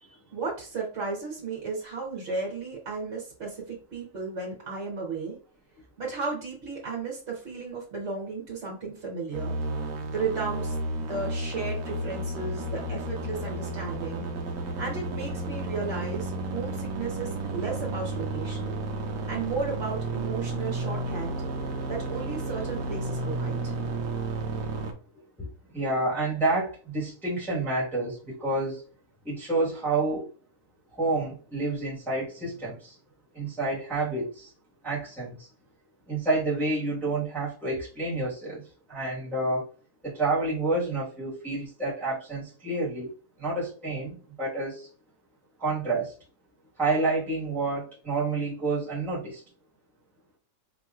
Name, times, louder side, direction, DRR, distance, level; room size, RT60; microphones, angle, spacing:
voice 1, 0.3-5.4 6.0-9.6 10.1-14.3 14.7-18.8 19.3-21.4 21.9-23.7, right 4 dB, 55° right, -3 dB, 1.4 m, -34 dB
sound 1, 9.3-24.9, right 2 dB, 80° right, 1.1 m, -32 dB
voice 2, 25.7-28.8 29.2-30.2 31.0-32.9 33.3-34.5 34.8-35.5 36.1-38.6 38.9-39.6 40.0-43.1 43.4-44.9 45.6-46.1 46.8-49.4, right 2 dB, ahead, -8 dB, 1.3 m, -29 dB
4.5 x 2.9 x 2.4 m, 0.39 s
omnidirectional pair, 1.4 m